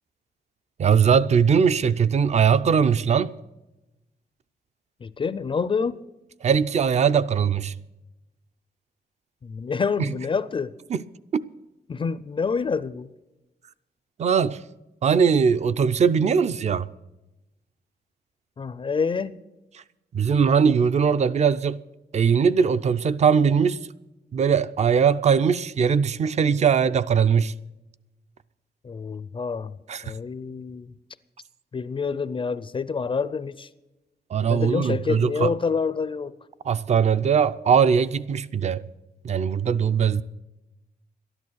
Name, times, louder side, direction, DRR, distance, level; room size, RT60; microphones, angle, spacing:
voice 1, 0.8-3.3 6.4-7.7 10.0-10.1 10.9-11.0 11.3-11.4 14.2-14.6 15.0-16.9 20.1-21.8 22.1-23.9 24.3-27.5 29.9-30.0 34.3-35.5 36.7-38.8 39.2-40.2, right 6 dB, 40° right, 0.4 m, -20 dB
voice 2, 5.0-6.0 9.4-10.8 11.9-13.1 18.6-19.4 28.8-29.8 30.0-31.0 31.7-33.7 34.5-36.3, left 5 dB, 30° left, 0.4 m, -27 dB
13.0 x 11.0 x 6.3 m
wide cardioid pair, 165°, 17 cm